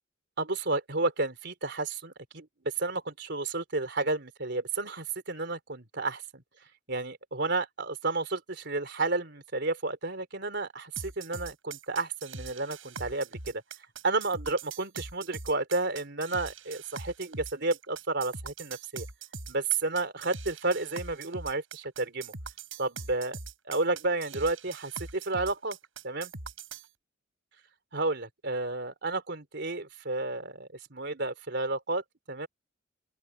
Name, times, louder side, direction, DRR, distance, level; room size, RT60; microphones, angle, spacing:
voice 1, 0.4-6.4 6.9-13.6 14.0-19.1 19.5-22.3 22.8-23.4 23.7-25.8 26.0-26.3 27.9-32.5, right 3 dB, 60° right, 3.6 m, -31 dB
sound 1, 11.0-26.9, right 4 dB, 85° right, 6.8 m, -42 dB
open air
head